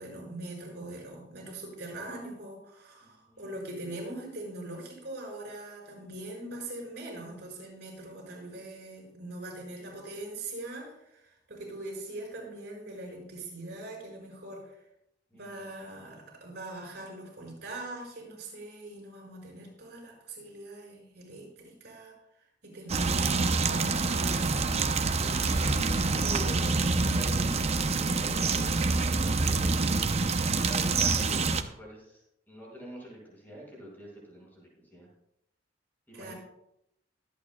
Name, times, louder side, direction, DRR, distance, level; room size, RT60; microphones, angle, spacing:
voice 1, 0.0-14.8 15.3-22.1 22.6-24.4 36.1-36.3, right 2 dB, 65° right, -1 dB, 5.4 m, -42 dB
voice 2, 3.0-3.5 15.3-15.9 25.2-35.1 36.1-36.3, equal, 10° left, -4 dB, 5.2 m, -46 dB
sound 1, 22.9-31.6, right 3 dB, 35° right, 0.7 m, -26 dB
24.0 x 8.6 x 2.3 m, 0.82 s
head